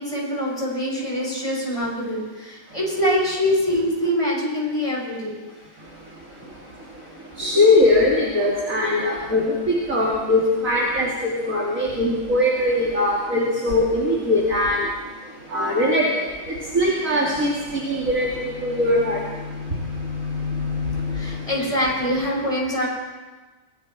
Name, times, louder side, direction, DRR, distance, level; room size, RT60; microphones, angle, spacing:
voice 1, 0.0-5.3 6.4-6.5 7.4-7.5 21.1-22.9, equal, 15° left, -3 dB, 7.0 m, -24 dB
voice 2, 7.4-9.4 9.9-11.1 11.5-14.8 15.5-16.0 16.7-17.5 17.9-19.2, left 1 dB, 40° right, -4 dB, 3.4 m, -20 dB
sound 1, 17.6-22.3, left 5 dB, 60° left, 5.8 m, -32 dB
29.0 x 20.0 x 4.5 m, 1.3 s
omnidirectional pair, 2.1 m